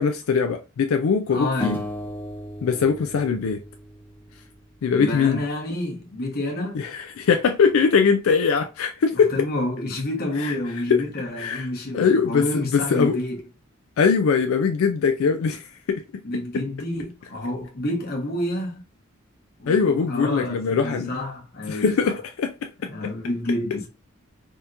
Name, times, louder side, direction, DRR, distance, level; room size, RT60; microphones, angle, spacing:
voice 1, 0.0-1.8 2.6-3.6 4.8-5.4 6.7-9.3 10.4-10.6 10.9-11.0 11.4-11.7 11.9-13.2 14.0-16.0 19.7-21.1 21.7-22.7, left 5 dB, 85° left, 0.4 m, -21 dB
voice 2, 1.3-1.8 4.9-6.8 9.1-13.4 16.2-18.8 19.6-22.2 22.9-23.9, left 1 dB, 50° left, 1.0 m, -29 dB
sound 1, 1.6-4.8, left 1 dB, 10° left, 0.7 m, -35 dB
3.6 x 2.8 x 2.5 m
head